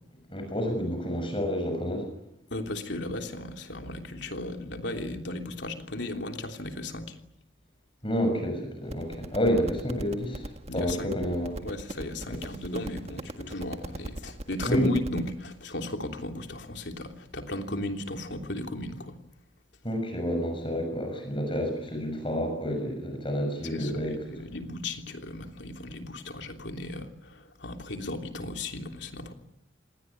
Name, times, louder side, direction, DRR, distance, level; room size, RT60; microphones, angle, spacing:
voice 1, 0.3-2.1 8.0-11.5 14.7-14.9 19.8-24.2, equal, 25° left, 5 dB, 6.4 m, -29 dB
voice 2, 2.5-7.2 10.7-11.1 11.6-19.2 23.7-29.3, left 1 dB, 70° left, 4 dB, 3.2 m, -35 dB
sound 1, 8.8-15.3, right 1 dB, 35° right, 1.8 m, -39 dB
28.0 x 20.0 x 9.8 m, 0.81 s
head